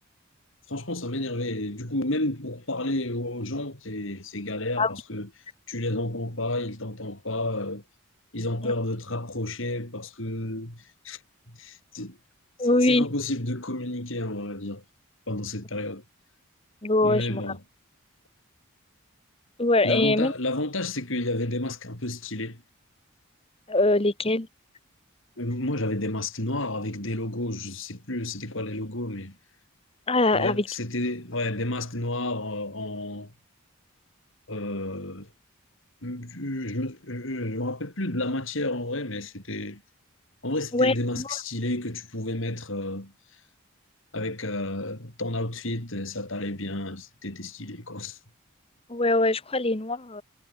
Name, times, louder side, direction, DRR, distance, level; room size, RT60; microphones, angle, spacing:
voice 1, 0.7-5.3 5.7-7.8 8.3-11.2 11.6-12.2 12.8-14.8 15.3-16.0 17.0-17.6 19.8-22.6 25.4-29.3 30.3-33.3 34.5-35.3 36.0-39.8 40.4-43.1 44.1-48.2, left 1 dB, 65° left, 4.5 m, -31 dB
voice 2, 12.6-13.1 16.8-17.4 19.6-20.3 23.7-24.5 30.1-30.6 40.7-41.4 48.9-50.2, left 2 dB, 25° left, 1.3 m, -23 dB
head